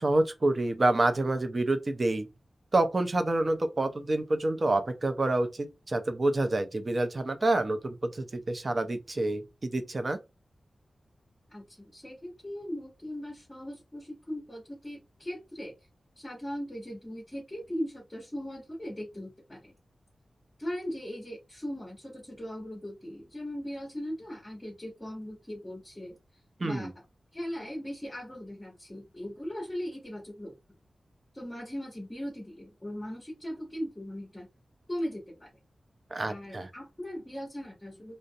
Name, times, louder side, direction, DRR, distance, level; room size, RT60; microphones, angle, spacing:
voice 1, 0.0-2.3 2.7-10.2 26.6-26.9 36.1-36.7, right 2 dB, 35° right, 0.5 m, -28 dB
voice 2, 11.5-15.7 16.2-19.7 20.6-26.1 26.6-26.9 27.3-30.6 31.3-34.5 34.9-35.5 36.2-38.2, equal, 15° left, 1.0 m, -39 dB
2.4 x 2.0 x 2.6 m
wide cardioid pair, 135°, 0 cm